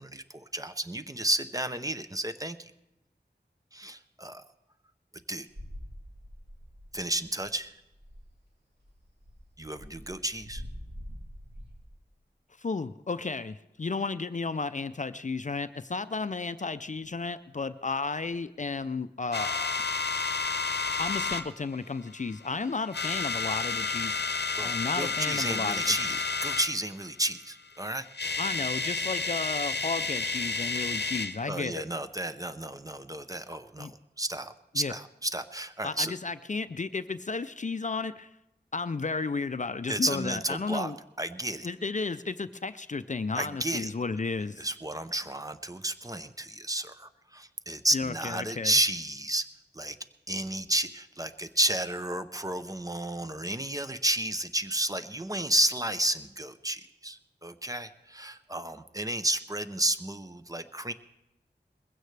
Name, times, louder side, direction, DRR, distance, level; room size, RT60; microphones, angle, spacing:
voice 1, 0.0-2.7 3.7-4.4 5.3-5.5 6.9-7.7 9.6-10.6 24.6-28.4 31.5-36.1 39.9-40.9 41.2-41.7 43.3-43.9 44.6-49.5 49.7-50.0 50.3-60.9, right 1 dB, 20° right, 10 dB, 0.7 m, -32 dB
sound 1, 5.5-7.2 7.4-7.6 7.8-8.3 8.8-11.8, equal, 75° right, 3.2 m, -44 dB
voice 2, 12.6-19.7 21.0-24.2 24.6-25.9 28.4-31.9 33.8-33.9 34.7-34.9 35.8-38.3 38.7-41.0 41.6-44.7 47.9-48.7, left 4 dB, 45° left, 12 dB, 0.4 m, -33 dB
sound 2, 19.3-21.4 22.2-22.5 22.8-26.7 27.8-27.9 28.1-31.4, left 4 dB, 70° left, 0.8 m, -31 dB
20.5 x 16.0 x 3.3 m, 0.91 s
wide cardioid pair, 60°, 18 cm